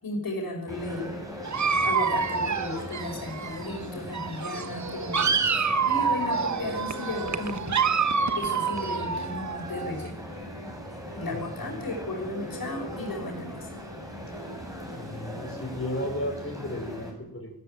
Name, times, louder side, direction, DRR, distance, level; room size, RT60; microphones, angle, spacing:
voice 1, 0.0-1.1 1.8-5.3 5.8-7.7 8.3-10.1 11.1-13.7, left 2 dB, 75° left, 1 dB, 6.1 m, -34 dB
sound 1, 0.7-17.1, equal, 10° right, 7.0 m, -39 dB
Dog, 1.4-3.8 4.1-10.1, right 5 dB, 55° right, 1.2 m, -27 dB
voice 2, 11.3-11.9 14.9-17.5, left 1 dB, 40° left, 1 dB, 6.0 m, -34 dB
19.0 x 16.0 x 9.2 m, 0.77 s
wide cardioid pair, 110°, 35 cm